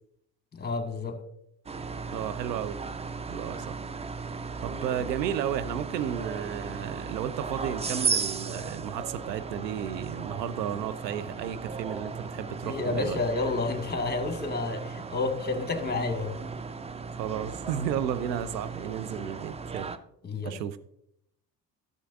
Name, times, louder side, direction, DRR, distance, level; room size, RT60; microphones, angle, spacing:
voice 1, 0.5-1.2 12.6-16.4 20.2-20.6, left 3 dB, 20° left, 1.5 m, -30 dB
sound 1, 1.7-20.0, right 5 dB, 15° right, 0.4 m, -36 dB
voice 2, 2.1-2.8 3.3-3.8 4.6-13.2 17.1-19.9 20.4-20.8, right 10 dB, 80° right, 0.7 m, -33 dB
14.0 x 6.7 x 2.4 m
figure-of-eight pair, 50°, 50 cm